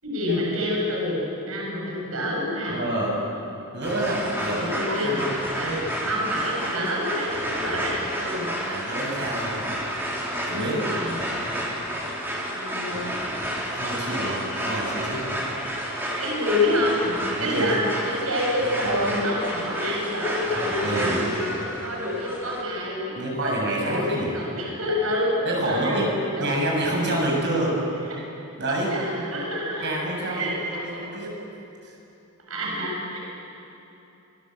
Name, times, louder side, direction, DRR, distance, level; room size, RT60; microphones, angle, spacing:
voice 1, 0.0-2.8 4.5-5.2 5.5-8.5 10.5-11.2 12.5-13.2 16.2-17.8 18.1-26.0 26.4-26.6 27.5-27.6 28.9-29.9 30.3-30.9 31.2-31.3 32.5-33.2, left 1 dB, 85° right, -2 dB, 7.0 m, -27 dB
voice 2, 2.7-3.2 3.7-5.3 8.7-9.8 10.5-10.8 13.7-15.4 17.4-17.7 20.8-21.3 23.2-24.3 25.4-26.1 26.4-27.8 28.6-29.0 29.8-31.3 31.8-32.0, right 1 dB, 55° right, -2 dB, 7.3 m, -28 dB
sound 1, 3.8-22.6, equal, 10° right, 4.4 m, -31 dB
26.5 x 20.5 x 8.0 m, 2.8 s
head